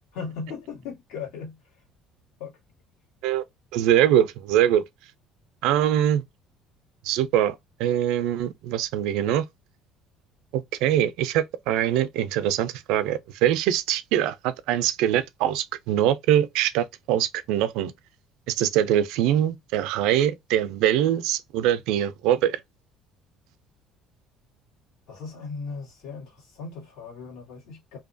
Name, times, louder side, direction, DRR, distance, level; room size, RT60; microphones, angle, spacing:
voice 1, 0.1-1.6 2.4-2.6 25.1-28.0, left 5 dB, 85° left, 1.5 m, -37 dB
voice 2, 3.7-4.8 5.6-6.2 7.0-9.5 10.5-17.9 18.5-22.6, right 11 dB, 80° right, 0.4 m, -23 dB
2.7 x 2.2 x 2.5 m
cardioid pair, 135°, 0 cm